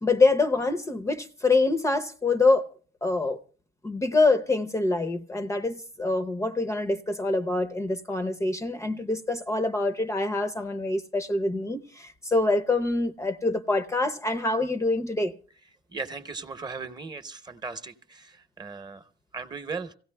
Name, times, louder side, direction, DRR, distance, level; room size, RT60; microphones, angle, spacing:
voice 1, 0.0-2.7 3.0-3.4 3.8-15.4, left 3 dB, 15° left, 0.6 m, -25 dB
voice 2, 15.9-20.0, right 4 dB, 25° right, 0.9 m, -37 dB
28.5 x 16.5 x 2.2 m
cardioid pair, 110°, 17 cm